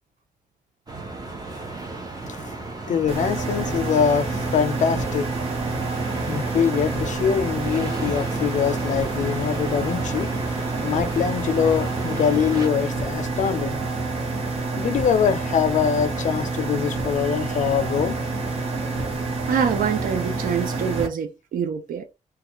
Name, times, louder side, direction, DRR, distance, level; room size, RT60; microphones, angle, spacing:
sound 1, 0.9-12.7, right 2 dB, 30° right, 0.8 m, -34 dB
voice 1, 2.2-2.6 2.9-5.3 6.3-10.3 10.8-13.8 14.8-18.2, left 7 dB, 60° left, 0.4 m, -23 dB
sound 2, 3.1-21.1, right 3 dB, 45° right, 1.1 m, -28 dB
voice 2, 19.5-22.1, right 7 dB, 80° right, 0.6 m, -25 dB
2.3 x 2.3 x 2.9 m
cardioid pair, 100°, 14 cm